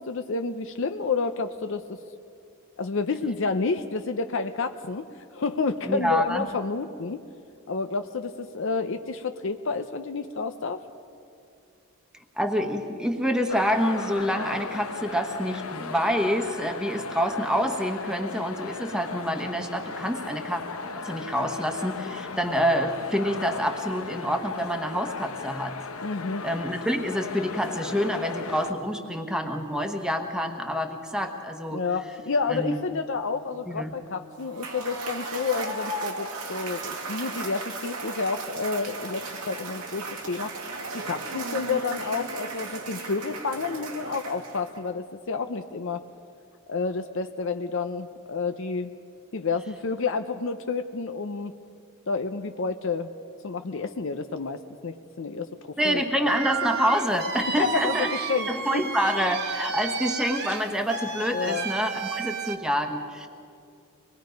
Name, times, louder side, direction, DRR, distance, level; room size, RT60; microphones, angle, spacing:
voice 1, 0.0-2.0 2.8-7.2 7.7-10.8 26.0-26.5 31.7-40.6 40.9-46.0 46.7-48.9 49.3-51.5 52.1-53.1 53.4-56.2 57.6-58.8 61.3-61.7, left 4 dB, 60° left, 7 dB, 0.6 m, -30 dB
voice 2, 5.8-6.5 12.4-20.6 21.0-25.7 26.4-31.8 32.5-32.8 33.7-33.9 55.8-58.1 58.5-63.3, equal, 5° right, 4 dB, 1.2 m, -27 dB
sound 1, 13.5-28.7, left 4 dB, 75° left, 0.9 m, -37 dB
Cheering / Applause / Crowd, 34.4-44.9, right 3 dB, 90° right, 2.1 m, -35 dB
sound 2, 56.3-62.6, right 5 dB, 50° right, 1.1 m, -32 dB
24.5 x 20.5 x 5.2 m, 2.4 s
head